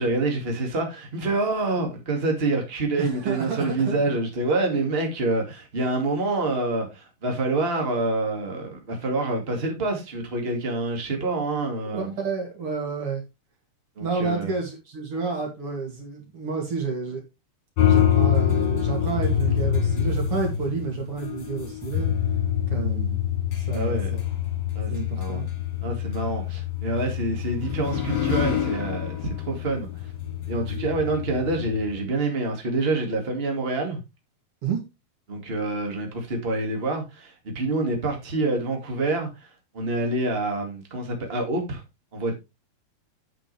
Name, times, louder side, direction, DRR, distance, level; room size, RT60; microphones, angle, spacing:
voice 1, 0.0-12.1 13.9-14.6 23.7-24.1 24.7-25.5 25.8-30.1 30.5-34.0 35.3-41.8 42.1-42.3, right 2 dB, 70° right, 0.5 m, -27 dB
voice 2, 3.0-4.0 11.8-13.2 14.0-17.2 17.9-22.1 22.7-23.2 23.6-24.2 24.9-25.5 34.6-34.8, right 5 dB, 40° right, 2.4 m, -30 dB
sound 1, 17.8-32.0, left 9 dB, 35° left, 2.9 m, -26 dB
8.8 x 7.7 x 3.3 m
omnidirectional pair, 5.1 m